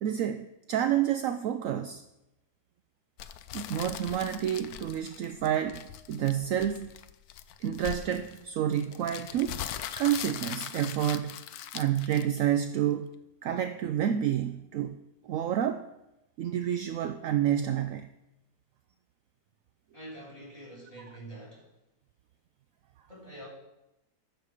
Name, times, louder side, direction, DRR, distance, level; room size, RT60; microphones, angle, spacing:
voice 1, 0.0-2.0 3.5-5.8 6.1-6.9 7.6-9.6 10.0-11.4 11.7-13.1 13.4-15.0 15.2-15.8 16.4-18.1, right 10 dB, 70° right, 9 dB, 0.9 m, -29 dB
sound 1, 3.2-12.6, left 10 dB, 75° left, 1.1 m, -40 dB
voice 2, 19.9-21.7 23.1-23.5, right 1 dB, 20° left, -7 dB, 4.5 m, -45 dB
14.0 x 6.6 x 5.0 m, 0.94 s
omnidirectional pair, 1.7 m